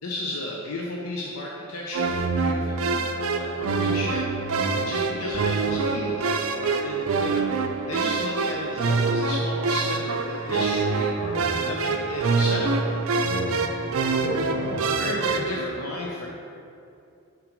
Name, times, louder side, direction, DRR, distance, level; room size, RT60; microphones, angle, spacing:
voice 1, 0.0-7.6 7.9-11.1 11.5-13.0 15.0-16.3, left 1 dB, 85° left, -2 dB, 0.7 m, -33 dB
sound 1, 1.9-15.7, right 4 dB, 70° right, 0.5 m, -25 dB
voice 2, 11.2-11.5 13.2-13.6 14.2-15.3, equal, 55° left, -6 dB, 1.6 m, -33 dB
5.9 x 5.1 x 5.1 m, 2.6 s
head